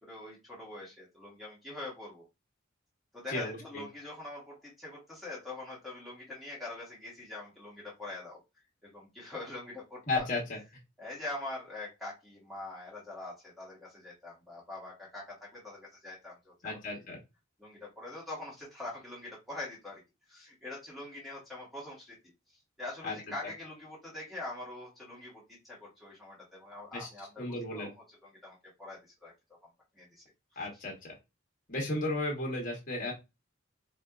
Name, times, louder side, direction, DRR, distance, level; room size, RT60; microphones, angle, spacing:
voice 1, 0.0-2.2 3.1-8.4 8.8-10.3 11.0-17.0 17.6-20.0 20.3-22.1 22.8-29.3 29.9-30.1 30.5-30.6, left 2 dB, ahead, -5 dB, 1.2 m, -44 dB
voice 2, 3.3-3.8 10.1-10.6 16.6-17.2 23.0-23.2 26.9-27.1 27.4-27.9 30.6-31.2 31.7-33.1, left 2 dB, 45° left, -1 dB, 1.1 m, -34 dB
4.2 x 2.4 x 2.3 m, 0.24 s
head